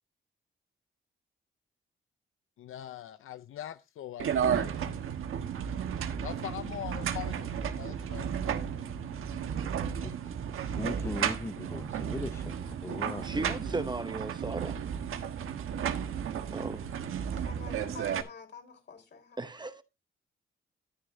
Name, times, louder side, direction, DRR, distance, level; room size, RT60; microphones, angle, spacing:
voice 1, 2.6-5.0 6.2-8.6, left 12 dB, 80° left, 0.6 m, -42 dB
sound 1, 4.2-18.2, right 8 dB, 90° right, 1.4 m, -33 dB
sound 2, 7.0-13.2, right 4 dB, 50° right, 2.3 m, -51 dB
voice 2, 10.8-13.9, left 2 dB, 15° left, 0.5 m, -39 dB
voice 3, 13.2-14.8 16.5-16.8 19.4-19.8, right 3 dB, 20° right, 0.8 m, -36 dB
voice 4, 17.3-19.4, left 5 dB, 60° left, 4.5 m, -48 dB
12.5 x 10.0 x 2.7 m
cardioid pair, 110°, 21 cm